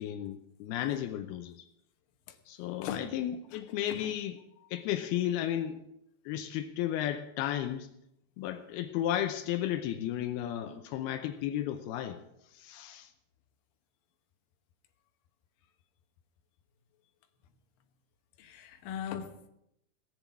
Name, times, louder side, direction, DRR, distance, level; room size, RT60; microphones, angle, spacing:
voice 1, 0.0-1.7 2.5-4.4 4.7-5.8 6.3-7.9 8.4-12.2 12.5-13.1, left 11 dB, 85° left, 2.2 m, -34 dB
voice 2, 18.4-19.5, left 8 dB, 70° left, 2.3 m, -39 dB
18.0 x 7.2 x 8.4 m
omnidirectional pair, 5.4 m